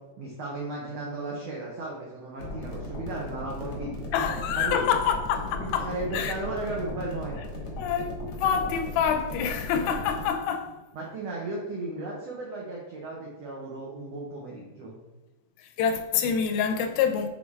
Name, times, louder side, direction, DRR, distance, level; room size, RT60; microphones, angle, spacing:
voice 1, 0.2-4.9 5.6-7.4 10.9-14.9, right 2 dB, 85° right, 1.4 m, -35 dB
sound 1, 2.4-10.3, left 1 dB, 65° left, 1.2 m, -37 dB
voice 2, 4.1-6.3 7.8-10.8 15.8-17.3, left 7 dB, 85° left, 2.3 m, -26 dB
6.2 x 4.2 x 3.6 m
omnidirectional pair, 4.2 m